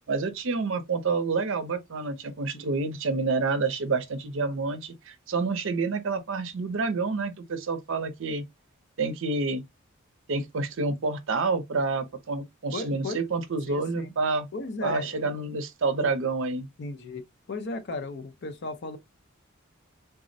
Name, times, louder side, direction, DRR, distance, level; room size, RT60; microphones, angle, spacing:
voice 1, 0.1-8.4 9.0-9.6 10.3-14.5 14.8-16.7, right 3 dB, 65° right, 0.6 m, -28 dB
voice 2, 12.7-13.2 13.7-14.1 14.5-15.3 16.8-17.2 17.5-19.0, left 3 dB, 55° left, 0.6 m, -35 dB
3.6 x 2.0 x 2.6 m
head